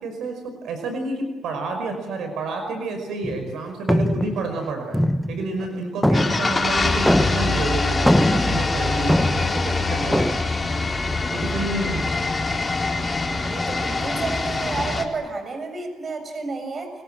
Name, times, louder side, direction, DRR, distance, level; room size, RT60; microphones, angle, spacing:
voice 1, 0.0-5.0 5.3-10.4 11.3-12.1, right 3 dB, 75° right, 5 dB, 5.4 m, -29 dB
sound 1, 3.2-3.5 3.9-5.7 6.0-7.6 7.9-9.6 10.1-10.4, equal, 5° left, 1.0 m, -22 dB
sound 2, 6.1-15.1, left 3 dB, 25° left, 4.0 m, -24 dB
voice 2, 13.4-16.9, right 3 dB, 45° right, 7 dB, 6.9 m, -31 dB
29.5 x 23.5 x 7.7 m, 1.2 s
cardioid pair, 90°, 0 cm